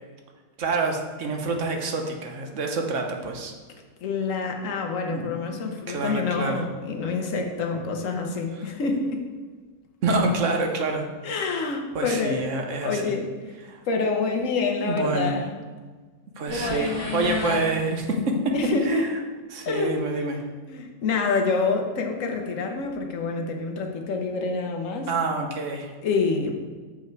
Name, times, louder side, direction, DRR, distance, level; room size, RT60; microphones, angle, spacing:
voice 1, 0.6-3.5 5.1-6.6 10.0-11.1 11.9-13.1 13.7-13.8 14.8-15.3 16.4-18.5 18.8-19.1 19.5-20.4 25.1-25.9, right 3 dB, 50° right, 3 dB, 1.1 m, -27 dB
voice 2, 4.0-9.2 11.2-12.4 12.8-13.6 13.9-15.5 16.5-17.6 18.5-19.1 19.6-20.0 20.7-25.1 26.0-26.5, left 4 dB, 55° left, 2 dB, 1.2 m, -27 dB
sound 1, 16.5-18.3, right 1 dB, 85° right, 3.2 m, -37 dB
7.0 x 5.3 x 4.7 m, 1.4 s
omnidirectional pair, 1.9 m